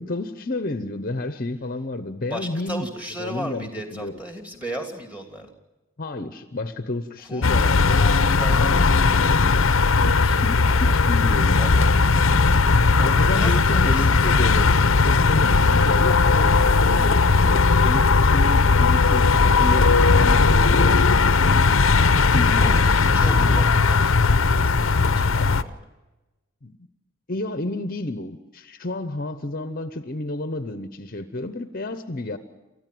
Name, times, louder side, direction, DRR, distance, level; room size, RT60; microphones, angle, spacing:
voice 1, 0.0-2.9 3.2-4.1 6.0-8.1 9.9-11.6 13.0-21.7 22.3-22.8 25.3-25.5 26.6-26.8 27.3-32.4, left 2 dB, 40° left, 10 dB, 0.9 m, -30 dB
voice 2, 2.3-5.5 7.2-7.5 8.0-11.0 11.5-11.9 13.3-14.3 22.3-25.8, right 1 dB, 5° right, 4 dB, 2.8 m, -37 dB
sound 1, 7.4-25.6, left 4 dB, 65° left, 0.8 m, -18 dB
28.5 x 14.5 x 7.8 m, 1.1 s
head